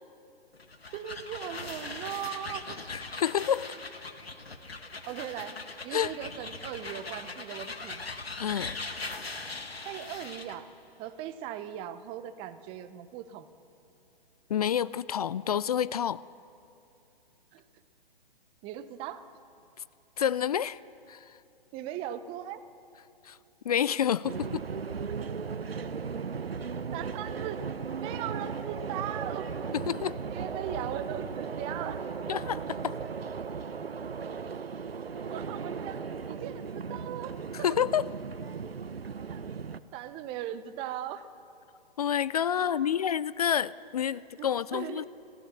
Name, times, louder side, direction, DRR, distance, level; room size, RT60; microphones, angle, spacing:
sound 1, 0.5-10.6, left 3 dB, 85° left, 1.7 m, -40 dB
voice 1, 0.9-2.8 5.1-5.6 5.8-8.0 9.8-10.7 11.0-13.5 17.5-17.6 18.6-19.2 21.7-22.6 26.9-27.6 28.0-29.5 30.3-32.0 35.3-36.0 36.3-37.3 37.7-37.8 39.3-39.4 39.9-41.3 42.6-43.0 44.4-45.1, right 11 dB, 20° right, 11 dB, 0.7 m, -38 dB
voice 2, 2.9-3.7 5.9-6.1 8.4-8.8 14.5-16.2 20.2-20.8 21.1-21.2 23.2-23.4 23.7-24.6 29.9-30.2 32.3-33.0 37.5-38.0 42.0-45.1, left 9 dB, 40° left, 19 dB, 0.4 m, -28 dB
sound 2, 24.2-39.8, right 5 dB, 80° right, 0.9 m, -36 dB
29.5 x 15.0 x 6.9 m, 2.8 s
figure-of-eight pair, 130°, 29 cm